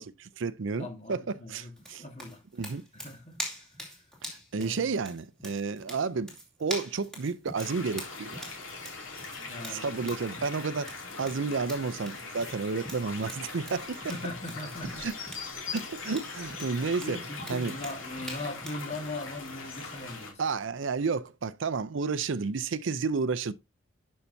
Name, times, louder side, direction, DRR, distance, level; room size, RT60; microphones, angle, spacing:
voice 1, 0.0-1.2 1.5-2.0 2.5-2.8 4.2-6.3 6.6-8.6 9.7-10.9 11.2-14.0 15.0-15.1 15.7-17.2 17.5-17.7 20.4-23.5, right 4 dB, 60° right, 0.5 m, -31 dB
voice 2, 0.8-1.7 2.0-2.4 2.9-3.4 4.5-4.8 9.3-10.1 14.1-15.1 17.0-20.4, left 2 dB, 35° left, 1.8 m, -39 dB
sound 1, 1.8-18.9, equal, 5° left, 2.4 m, -43 dB
sound 2, 7.5-20.3, left 4 dB, 70° left, 2.8 m, -41 dB
11.5 x 5.6 x 2.7 m
head